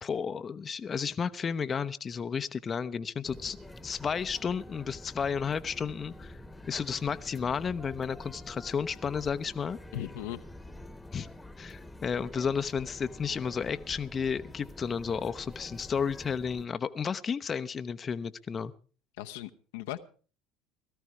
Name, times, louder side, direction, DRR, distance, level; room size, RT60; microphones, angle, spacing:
voice 1, 0.0-3.6 3.8-6.4 6.7-9.8 11.1-11.3 11.6-18.7, left 6 dB, 35° left, 12 dB, 0.7 m, -32 dB
sound 1, 3.2-16.7, left 1 dB, 10° left, 1.2 m, -47 dB
voice 2, 9.9-10.4 19.2-20.0, left 13 dB, 75° left, 7 dB, 0.8 m, -38 dB
17.5 x 14.0 x 4.8 m, 0.39 s
hypercardioid pair, 70°, 0 cm